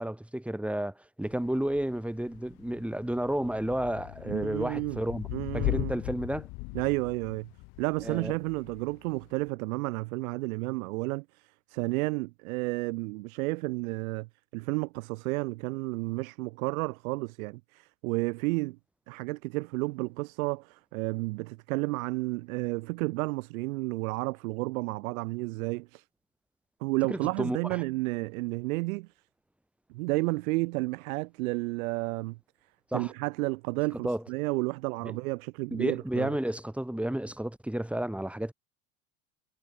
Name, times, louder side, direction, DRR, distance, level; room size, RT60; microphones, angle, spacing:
voice 1, 0.0-5.3 5.5-6.5 8.0-8.3 27.1-27.6 32.9-33.1 34.0-34.2 35.0-35.2 35.7-38.5, right 1 dB, 5° right, 4.6 m, -31 dB
Thunder / Rain, 1.2-9.5, left 27 dB, 60° left, 4.2 m, -39 dB
voice 2, 4.3-5.0 5.3-5.9 6.7-7.5 7.8-18.8 19.1-26.0 26.8-29.1 29.9-32.4 32.9-36.4, right 24 dB, 70° right, 6.7 m, -31 dB
hypercardioid pair, 100°, 42 cm